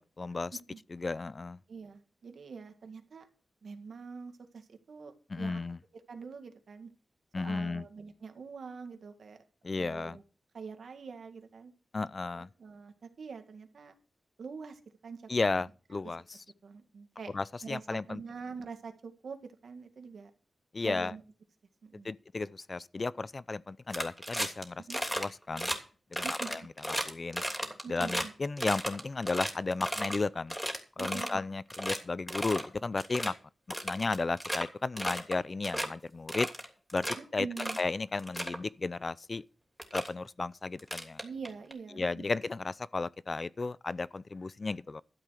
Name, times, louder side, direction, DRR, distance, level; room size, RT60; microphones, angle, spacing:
voice 1, 0.0-0.6 0.9-1.6 5.3-5.8 7.3-7.8 9.6-10.2 11.9-12.5 15.3-16.4 17.3-18.2 20.7-21.1 22.0-25.7 26.1-26.6 27.1-27.4 27.9-30.6 31.0-33.4 33.8-36.5 36.9-37.1 37.3-37.5 37.8-39.4 39.9-41.2 41.9-45.0, left 3 dB, 40° left, 0.5 m, -34 dB
voice 2, 1.7-3.3 3.6-5.6 6.1-6.9 7.4-9.4 9.8-10.2 10.5-11.7 12.3-13.9 14.4-15.7 16.6-17.3 17.6-20.3 20.8-21.2 21.8-22.1 24.8-25.0 26.2-26.7 27.8-28.3 31.0-31.4 37.2-37.8 41.2-42.3, right 5 dB, 75° right, 2.1 m, -45 dB
sound 1, 23.9-24.6 24.9-25.3 25.6-25.8 26.1-28.3 28.6-30.2 30.5-31.4 31.7-32.0 32.3-32.7 33.0-33.3 33.7-34.6 35.0-35.4 35.6-35.9 36.3-37.2 37.6-37.8 38.2-38.6 39.4-39.5 39.8-40.1 40.8-41.7, equal, ahead, 3.0 m, -34 dB
12.5 x 8.0 x 5.9 m
cardioid pair, 75°, 0 cm